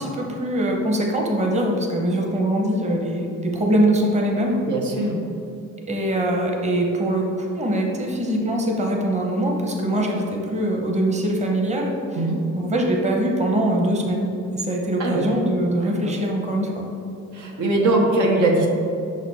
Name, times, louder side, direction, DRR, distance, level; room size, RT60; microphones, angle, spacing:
voice 1, 0.0-4.6 5.8-12.2 12.5-16.9, right 1 dB, 25° right, 0 dB, 0.9 m, -23 dB
voice 2, 4.6-5.2 12.1-12.4 15.0-15.3 16.0-16.2 17.3-18.7, right 2 dB, 80° right, 0 dB, 1.0 m, -21 dB
5.8 x 4.2 x 4.2 m, 2.7 s
cardioid pair, 90°, 30 cm